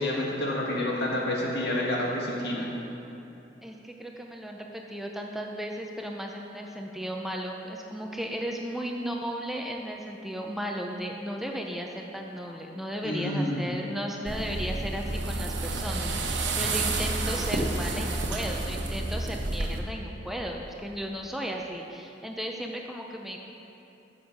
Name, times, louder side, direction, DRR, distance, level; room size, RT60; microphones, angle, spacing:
voice 1, 0.0-2.7 13.0-13.7, left 1 dB, 65° left, -3 dB, 1.9 m, -29 dB
voice 2, 3.6-23.4, equal, ahead, 0 dB, 0.6 m, -35 dB
sound 1, 14.3-19.8, right 2 dB, 80° right, 1.1 m, -30 dB
9.8 x 7.3 x 6.2 m, 2.9 s
head